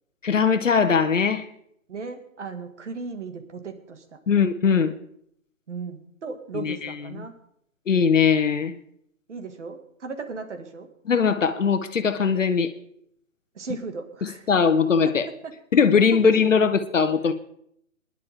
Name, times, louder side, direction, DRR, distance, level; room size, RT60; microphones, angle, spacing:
voice 1, 0.2-1.5 4.3-4.9 6.5-7.3 7.9-8.7 11.1-12.7 14.2-15.3 15.7-17.3, left 6 dB, 65° left, 9 dB, 1.1 m, -20 dB
voice 2, 1.9-4.2 5.7-7.4 9.3-10.9 13.5-14.5 15.0-15.2 15.4-15.5 16.1-16.3, right 4 dB, 60° right, 7 dB, 2.2 m, -36 dB
22.0 x 11.0 x 3.7 m, 0.72 s
figure-of-eight pair, 140°, 40 cm